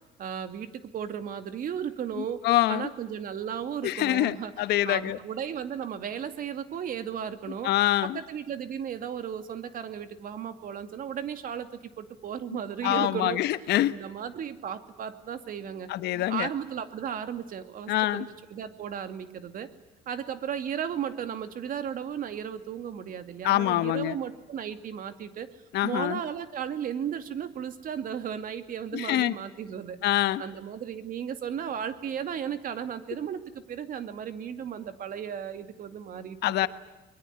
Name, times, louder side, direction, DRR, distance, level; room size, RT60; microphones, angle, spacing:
voice 1, 0.2-2.4 2.7-7.7 8.1-11.7 12.0-19.7 20.1-25.5 25.8-30.0 30.4-33.4 33.7-36.4, right 8 dB, 55° right, 9 dB, 2.5 m, -35 dB
voice 2, 2.2-2.9 3.8-5.2 7.6-8.2 12.8-13.9 15.9-16.5 17.9-18.3 23.4-24.1 25.7-26.2 28.9-29.3 30.0-30.4 36.4-36.7, left 14 dB, 75° left, 13 dB, 1.3 m, -25 dB
24.0 x 21.5 x 9.5 m, 1.0 s
cardioid pair, 110°, 17 cm